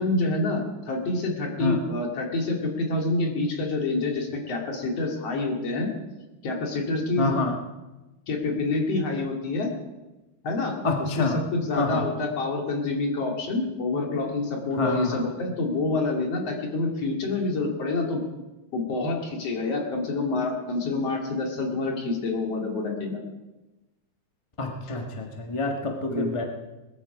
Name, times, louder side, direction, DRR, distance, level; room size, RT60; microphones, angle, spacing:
voice 1, 0.0-5.9 6.4-7.3 8.3-9.7 10.4-18.2 18.7-23.2 26.1-26.4, left 3 dB, 55° left, 1 dB, 3.3 m, -27 dB
voice 2, 7.2-7.5 10.8-11.4 11.7-12.0 14.8-15.2 24.6-26.4, left 3 dB, 20° left, 2 dB, 0.7 m, -27 dB
20.0 x 13.5 x 5.0 m, 1.1 s
omnidirectional pair, 3.5 m